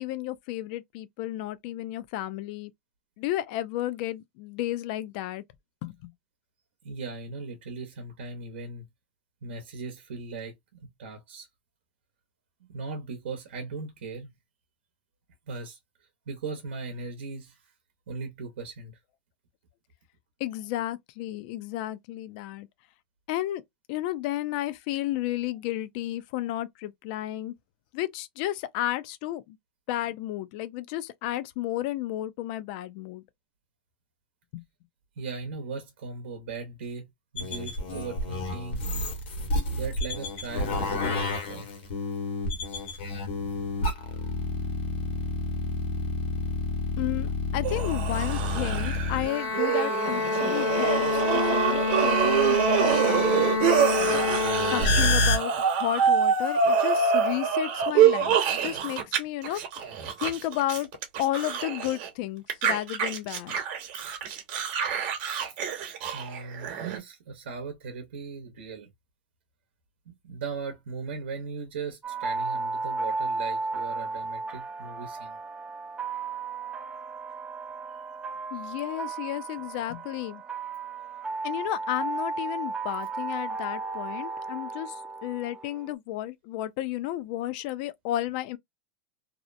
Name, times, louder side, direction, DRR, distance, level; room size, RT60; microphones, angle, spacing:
voice 1, 0.0-2.7 3.2-5.4 5.8-6.1 20.4-22.7 23.3-23.6 23.9-27.5 27.9-29.6 29.9-33.2 34.5-34.6 47.0-54.3 54.7-59.8 60.2-60.9 61.2-63.6 78.5-80.4 81.4-88.6, left 14 dB, 55° left, 0.4 m, -32 dB
voice 2, 6.8-8.8 9.4-10.5 11.0-11.5 12.7-14.3 15.5-15.8 16.3-17.5 18.1-18.9 35.2-37.1 37.3-38.9 39.7-41.7 63.9-64.2 65.3-65.4 66.1-68.9 70.1-75.4, right 4 dB, 85° right, 0.8 m, -38 dB
sound 1, 37.4-55.4, left 3 dB, 75° left, 1.2 m, -28 dB
sound 2, 47.6-59.2 59.4-62.1 62.5-67.0, right 7 dB, 50° right, 0.9 m, -26 dB
sound 3, 72.0-85.9, right 3 dB, 15° right, 0.4 m, -34 dB
2.7 x 2.0 x 2.5 m
supercardioid pair, 140°, 6 cm